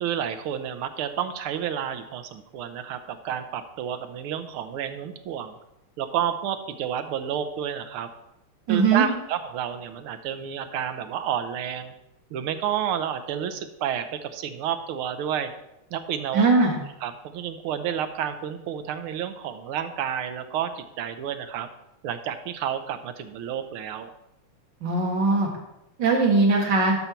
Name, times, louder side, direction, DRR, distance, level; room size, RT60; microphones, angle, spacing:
voice 1, 0.0-5.6 6.0-8.1 8.7-11.9 12.3-15.5 15.9-16.6 17.0-21.7 22.0-24.1, right 9 dB, 80° right, 9 dB, 1.6 m, -30 dB
voice 2, 8.7-9.1 16.3-16.8 24.8-25.5 26.0-27.0, right 3 dB, 55° right, 0 dB, 2.4 m, -20 dB
12.0 x 5.7 x 4.4 m, 0.87 s
omnidirectional pair, 2.4 m